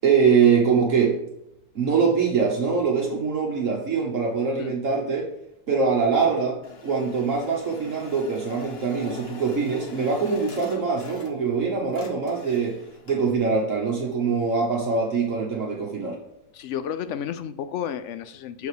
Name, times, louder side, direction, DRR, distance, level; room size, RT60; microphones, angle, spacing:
voice 1, 0.0-1.2 1.7-5.3 5.7-6.6 6.8-12.8 13.1-16.2, right 5 dB, 60° right, -1 dB, 1.4 m, -23 dB
sound 1, 6.6-11.6 11.8-13.4, left 4 dB, 45° left, 1.2 m, -44 dB
voice 2, 16.5-18.7, left 9 dB, 65° left, 12 dB, 0.8 m, -32 dB
6.6 x 5.1 x 4.9 m, 0.82 s
omnidirectional pair, 1.6 m